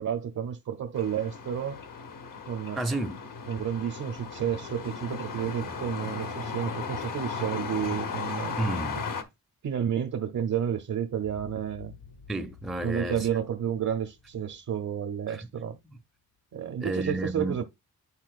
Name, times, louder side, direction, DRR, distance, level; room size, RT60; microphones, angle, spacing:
voice 1, 0.0-1.8 2.5-2.8 3.5-8.5 9.6-11.9 12.8-15.8 16.5-17.6, right 9 dB, 55° right, 0.6 m, -31 dB
sound 1, 0.9-9.2, left 5 dB, 60° left, 0.9 m, -36 dB
voice 2, 2.8-3.3 8.6-9.0 12.3-13.3 15.3-15.5 16.8-17.6, right 2 dB, ahead, 0.5 m, -31 dB
sound 2, 11.1-15.8, left 6 dB, 85° left, 2.1 m, -51 dB
9.6 x 4.1 x 2.4 m
wide cardioid pair, 110°, 36 cm